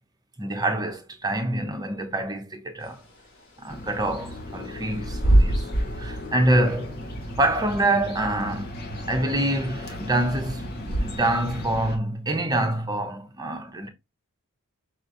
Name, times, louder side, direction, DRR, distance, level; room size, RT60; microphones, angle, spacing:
voice 1, 0.4-3.0 3.6-5.6 6.0-7.0 7.4-8.8 9.1-13.9, right 1 dB, 20° right, 0.9 m, -26 dB
Bird / Wind, 2.8-11.5, right 1 dB, 75° left, 3.1 m, -27 dB
sound 1, 3.7-12.0, left 1 dB, 50° left, 1.4 m, -36 dB
6.2 x 3.1 x 2.6 m
head